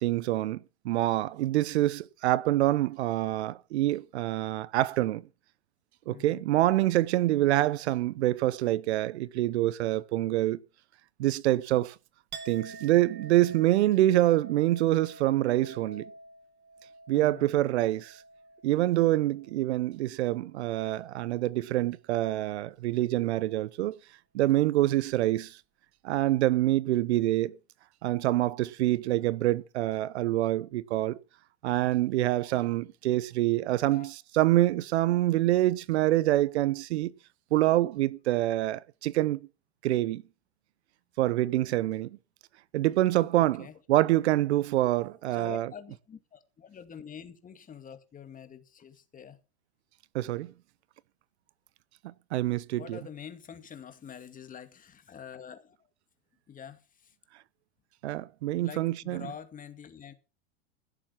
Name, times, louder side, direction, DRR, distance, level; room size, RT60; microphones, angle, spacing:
voice 1, 0.0-5.2 6.1-10.6 11.2-11.9 12.5-16.0 17.1-18.2 18.6-24.0 24.3-25.6 26.0-27.5 28.0-31.2 31.6-37.1 37.5-39.4 39.8-40.2 41.2-42.2 42.7-45.7 50.1-50.5 52.0-53.0 58.0-59.3, right 15 dB, 75° right, 0.9 m, -26 dB
voice 2, 6.1-6.5 17.1-17.5 33.9-34.1 43.6-43.7 45.3-49.4 52.8-55.9 56.5-57.2 58.6-60.1, left 8 dB, 25° left, 2.3 m, -46 dB
Chink clink, 12.3-20.0 20.3-21.0, right 3 dB, 35° right, 1.9 m, -49 dB
16.5 x 7.4 x 5.8 m
hypercardioid pair, 110°, 33 cm